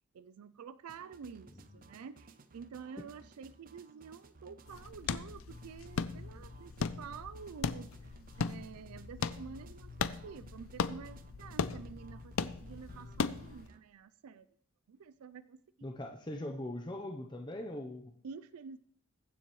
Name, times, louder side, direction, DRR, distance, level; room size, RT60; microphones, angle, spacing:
voice 1, 0.1-14.5 14.9-15.6 18.2-18.8, right 6 dB, 85° right, 14 dB, 0.4 m, -49 dB
sound 1, 0.9-13.8, right 3 dB, 40° right, 0.6 m, -59 dB
sound 2, 4.7-13.7, left 5 dB, 70° left, 0.5 m, -38 dB
voice 2, 15.8-18.1, left 1 dB, 20° left, 3 dB, 0.6 m, -41 dB
21.5 x 7.3 x 3.1 m, 0.62 s
head